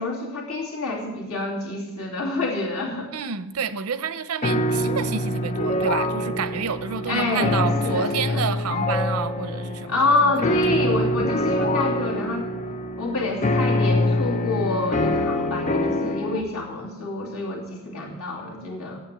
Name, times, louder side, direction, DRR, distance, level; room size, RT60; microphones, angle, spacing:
voice 1, 0.0-3.1 7.1-8.5 9.9-12.5 13.0-19.0, left 3 dB, 80° left, -2 dB, 2.7 m, -27 dB
voice 2, 3.1-10.0 10.2-10.3 10.8-11.1, right 5 dB, 85° right, 13 dB, 0.7 m, -29 dB
sound 1, 4.4-16.4, left 1 dB, 35° left, 0.6 m, -25 dB
9.1 x 8.6 x 8.8 m, 1.1 s
head